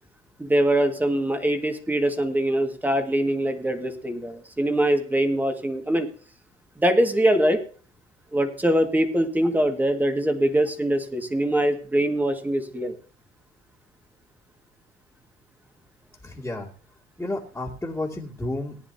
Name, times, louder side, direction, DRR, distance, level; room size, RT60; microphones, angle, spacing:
voice 1, 0.4-6.1 6.8-7.6 8.3-12.9, right 1 dB, 10° right, 6 dB, 1.9 m, -23 dB
voice 2, 16.2-16.7 17.2-18.8, left 2 dB, 10° left, -6 dB, 2.4 m, -31 dB
19.0 x 10.0 x 2.8 m, 0.41 s
cardioid pair, 110°, 17 cm